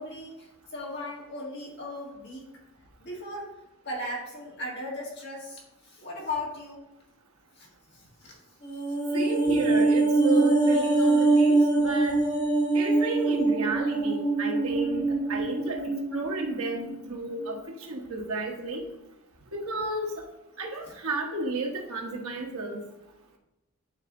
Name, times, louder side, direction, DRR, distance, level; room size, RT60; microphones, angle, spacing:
voice 1, 0.0-2.5 3.0-3.5 3.8-6.8 7.5-7.7 7.9-8.4, left 1 dB, 50° left, -3 dB, 1.8 m, -37 dB
sound 1, 8.6-17.1 17.4-17.5, right 3 dB, 30° left, 2.1 m, -24 dB
voice 2, 9.1-12.2 12.7-17.6 17.9-18.8 19.5-20.2 20.6-22.8, right 2 dB, 90° right, 1 dB, 1.2 m, -32 dB
9.0 x 3.4 x 3.8 m, 0.95 s
head